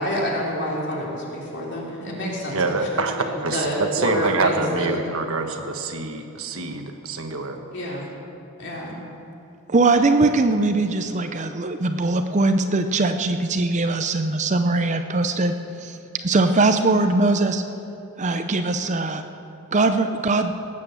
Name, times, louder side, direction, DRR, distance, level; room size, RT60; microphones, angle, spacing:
voice 1, 0.0-4.9 7.7-8.1 8.6-8.9, equal, 55° left, -3 dB, 3.2 m, -28 dB
voice 2, 2.5-7.6, right 3 dB, 70° right, 5 dB, 1.3 m, -26 dB
voice 3, 9.7-15.6 15.8-16.0 16.2-17.6 18.2-19.2 19.7-20.5, right 3 dB, 35° right, 7 dB, 0.6 m, -21 dB
18.5 x 8.5 x 7.0 m, 2.7 s
head